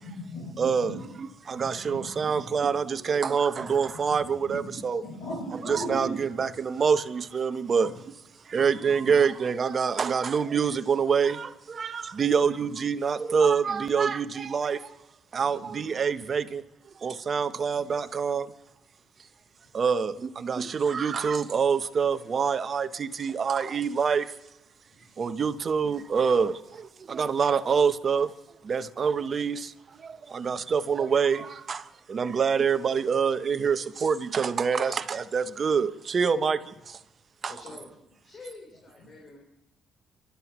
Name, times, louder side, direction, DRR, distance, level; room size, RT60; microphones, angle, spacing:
voice 1, 0.0-1.0 1.6-2.7 3.6-3.7 4.1-6.1 8.5-9.0 12.6-12.7 15.4-15.8 17.3-17.4, left 1 dB, 75° left, 7.1 m, -40 dB
voice 2, 0.6-5.0 5.5-7.9 8.5-14.9 15.3-16.6 17.0-18.5 19.7-24.3 25.2-28.3 28.6-37.0 37.4-37.5, right 6 dB, 45° right, 0.8 m, -26 dB
voice 3, 37.4-37.9 38.2-39.4, left 3 dB, 45° left, 3.9 m, -47 dB
28.5 x 12.5 x 3.1 m
supercardioid pair, 75°, 0 cm